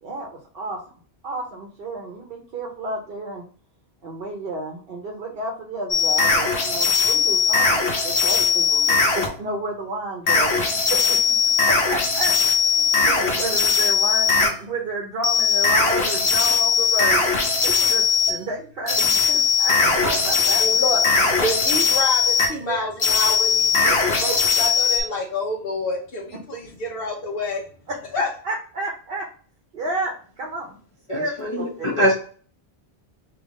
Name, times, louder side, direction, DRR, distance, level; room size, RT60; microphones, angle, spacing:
voice 1, 0.0-0.8 1.2-3.4 4.0-10.6 10.9-11.3 11.6-12.3 12.7-17.2 17.6-20.6 22.6-22.9 27.9-28.0 28.4-29.3 29.7-30.7 31.1-31.9, right 2 dB, 65° right, 0 dB, 0.9 m, -31 dB
sound 1, 5.9-9.3 10.3-14.5 15.2-18.4 18.9-22.5 23.0-25.0, left 5 dB, 85° left, 1.1 m, -19 dB
voice 2, 20.6-21.0 21.4-27.6 28.1-28.3, left 1 dB, 65° left, -3 dB, 1.0 m, -28 dB
voice 3, 31.1-32.1, equal, 30° left, -6 dB, 0.9 m, -22 dB
3.6 x 2.8 x 3.6 m, 0.42 s
omnidirectional pair, 1.1 m